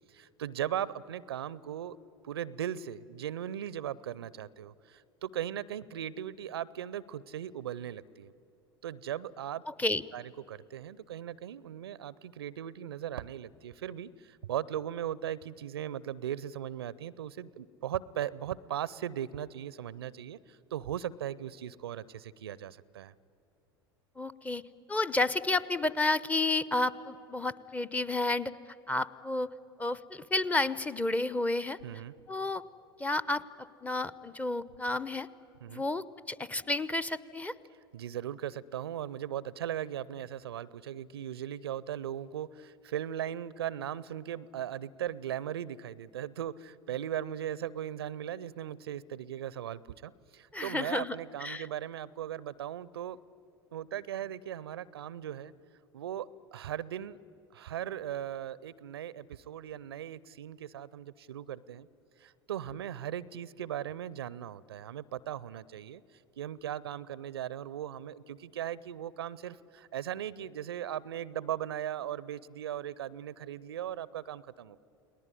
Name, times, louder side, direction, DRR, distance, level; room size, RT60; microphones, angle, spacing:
voice 1, 0.1-2.0 2.2-8.3 8.8-9.6 10.1-20.4 20.7-23.1 31.8-32.1 35.6-35.8 37.9-53.2 53.7-55.5 55.9-57.2 57.5-61.9 62.2-66.0 66.4-74.8, right 10 dB, 75° right, 21 dB, 0.6 m, -38 dB
voice 2, 9.7-10.0 24.2-24.6 24.9-28.5 28.9-29.5 29.8-31.8 32.3-32.6 33.0-33.4 33.8-35.3 35.7-37.5 50.5-51.7, left 2 dB, 10° left, 17 dB, 0.8 m, -31 dB
29.5 x 19.5 x 9.9 m, 2.7 s
figure-of-eight pair, 80°, 13 cm